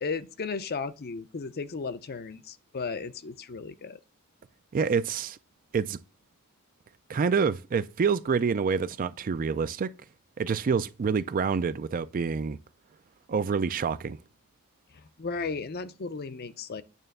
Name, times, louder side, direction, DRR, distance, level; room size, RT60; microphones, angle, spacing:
voice 1, 0.0-4.0 14.9-16.8, left 4 dB, 45° left, 0.5 m, -35 dB
voice 2, 4.7-5.4 5.7-6.0 7.1-9.9 10.4-12.6 13.3-14.2, right 5 dB, 40° right, 0.3 m, -27 dB
9.0 x 3.3 x 6.6 m
head